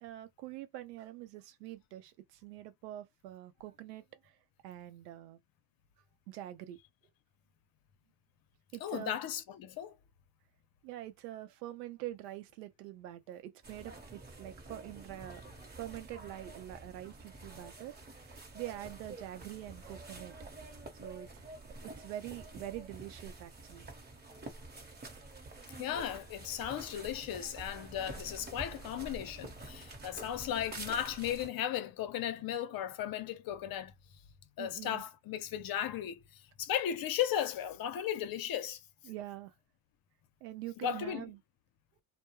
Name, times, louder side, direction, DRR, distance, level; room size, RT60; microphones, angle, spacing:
voice 1, 0.0-4.0 4.6-5.4 6.3-6.8 8.7-9.2 10.8-15.5 15.8-20.5 21.0-21.5 21.8-23.9 34.6-35.0 39.0-39.5 40.4-41.4, right 14 dB, 90° right, 0.7 m, -45 dB
voice 2, 8.8-10.0 15.3-15.4 25.8-33.9 34.6-38.8 40.8-41.3, left 10 dB, 50° left, 0.7 m, -36 dB
sound 1, 13.6-31.5, right 2 dB, 20° right, 1.0 m, -48 dB
2.2 x 2.2 x 3.0 m
supercardioid pair, 90°, 47 cm